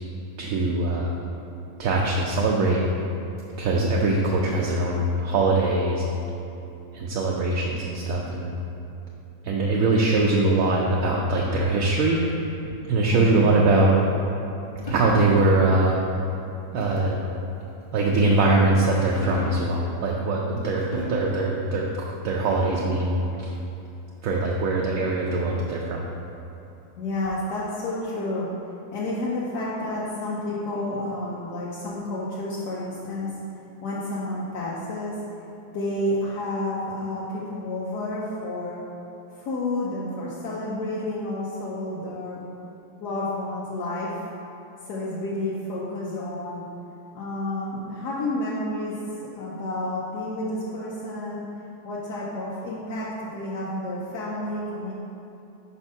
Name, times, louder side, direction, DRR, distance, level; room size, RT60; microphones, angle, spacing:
voice 1, 0.4-1.1 1.8-2.8 3.6-6.0 6.9-8.5 9.4-12.2 12.9-13.9 14.9-15.9 16.7-17.2 17.9-21.8 22.2-23.5 24.2-26.0, right 2 dB, 70° right, -2 dB, 0.9 m, -22 dB
voice 2, 13.1-13.9 27.0-28.5 28.9-33.4 33.8-35.2 35.7-38.8 39.3-42.4 43.0-44.2 44.8-46.6 47.1-49.0 49.3-51.4 51.8-54.9, left 1 dB, 80° left, -6 dB, 1.3 m, -30 dB
sound 1, 14.9-15.7 16.8-17.2 17.8-18.7 19.0-19.7 20.7-21.5 22.0-22.1 22.4-23.1 24.5-25.7, left 1 dB, 30° left, 0.8 m, -36 dB
5.0 x 4.4 x 5.3 m, 2.8 s
omnidirectional pair, 1.7 m